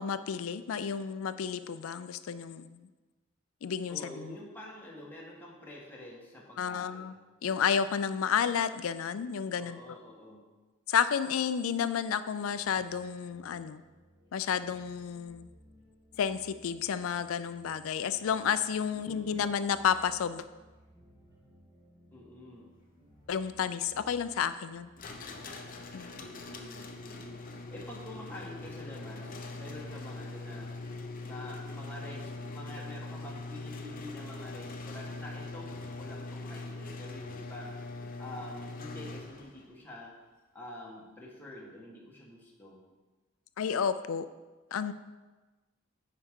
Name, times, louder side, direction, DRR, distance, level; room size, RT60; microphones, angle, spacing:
voice 1, 0.0-2.9 3.6-4.4 6.6-7.1 7.4-9.8 10.9-13.8 14.3-15.5 16.2-20.4 23.3-24.9 25.9-26.4 43.6-44.3 44.7-44.9, left 7 dB, 80° left, 13 dB, 0.4 m, -31 dB
voice 2, 3.9-7.2 9.6-10.5 18.9-19.5 22.1-22.7 23.9-24.1 26.1-30.8 31.2-37.8 38.2-40.1 40.5-42.8, left 1 dB, 10° left, -4 dB, 1.3 m, -47 dB
sound 1, 12.5-28.9, equal, 20° right, 1.7 m, -61 dB
sound 2, 25.0-39.7, left 2 dB, 45° left, 0.7 m, -42 dB
9.8 x 4.7 x 3.7 m, 1.2 s
head